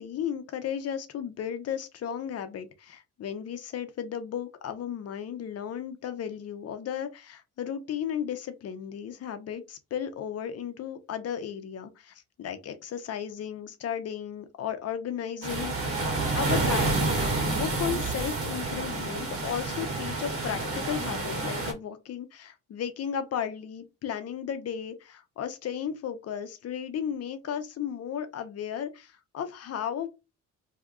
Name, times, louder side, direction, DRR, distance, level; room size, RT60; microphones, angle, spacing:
voice 1, 0.0-16.0 16.3-30.1, left 8 dB, 55° left, 0.7 m, -35 dB
sound 1, 15.4-21.7, right 3 dB, 50° right, 1.5 m, -29 dB
2.8 x 2.3 x 3.5 m
cardioid pair, 90°, 30 cm